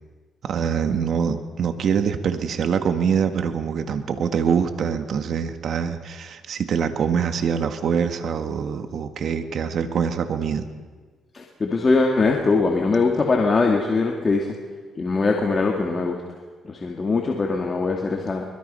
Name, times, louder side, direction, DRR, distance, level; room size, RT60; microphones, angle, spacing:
voice 1, 0.4-10.7, right 7 dB, 65° right, 8 dB, 1.9 m, -24 dB
voice 2, 11.3-14.5 15.0-16.2 16.6-18.4, left 3 dB, 35° left, 1 dB, 2.5 m, -21 dB
24.0 x 21.5 x 5.7 m, 1.4 s
cardioid pair, 90°, 0 cm